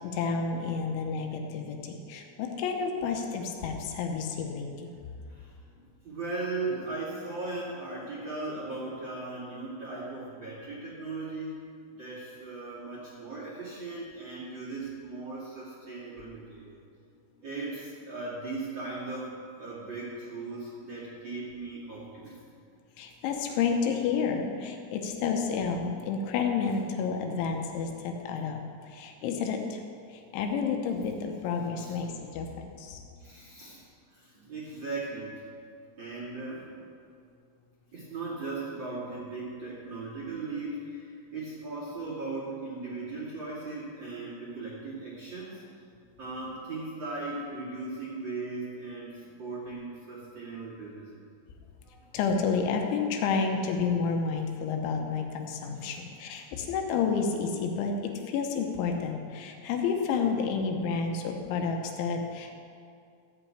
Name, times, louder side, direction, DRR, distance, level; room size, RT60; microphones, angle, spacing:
voice 1, 0.0-4.9 23.0-28.6 28.8-29.8 30.1-33.0 52.1-57.9 58.3-62.6, left 5 dB, 80° left, 3 dB, 3.1 m, -30 dB
voice 2, 5.3-11.6 12.0-16.8 17.4-22.4 31.8-32.0 33.2-35.4 36.0-36.7 37.9-45.6 46.2-51.2 51.8-52.0 55.7-56.0, right 3 dB, 45° right, -7 dB, 1.5 m, -38 dB
14.5 x 5.2 x 8.6 m, 2.4 s
omnidirectional pair, 6.0 m